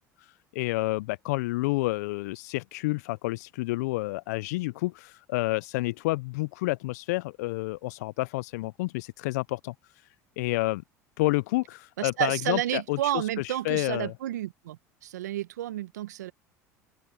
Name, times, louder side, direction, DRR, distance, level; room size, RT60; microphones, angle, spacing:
voice 1, 0.2-9.7 10.4-10.8 11.2-14.1, left 21 dB, 75° left, 0.4 m, -29 dB
voice 2, 12.0-16.3, right 13 dB, 80° right, 1.1 m, -31 dB
open air
hypercardioid pair, 70°, 9 cm